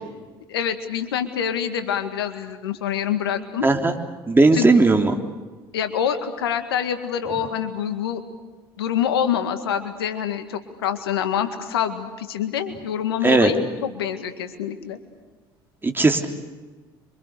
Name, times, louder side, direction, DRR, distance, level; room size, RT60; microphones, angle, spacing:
voice 1, 0.5-3.7 4.5-4.7 5.7-8.2 8.8-15.0, left 8 dB, 85° left, 9 dB, 1.9 m, -26 dB
voice 2, 3.6-3.9 4.3-5.2 13.2-13.5 15.8-16.3, right 3 dB, 15° right, 3 dB, 3.4 m, -17 dB
27.5 x 25.0 x 6.8 m, 1.3 s
hypercardioid pair, 60°, 12 cm